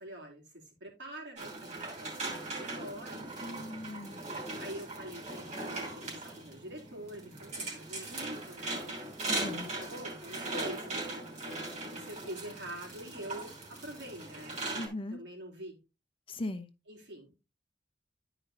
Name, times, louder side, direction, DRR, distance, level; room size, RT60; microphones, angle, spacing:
voice 1, 0.0-3.7 4.6-9.0 9.5-14.6 15.1-15.8 16.9-17.4, right 1 dB, 80° right, 3.2 m, -46 dB
sound 1, 1.4-14.9, right 2 dB, 40° right, 3.1 m, -39 dB
voice 2, 3.4-4.2 9.3-9.7 14.7-15.2 16.3-16.7, left 1 dB, 30° left, 0.7 m, -39 dB
11.5 x 5.0 x 2.7 m
head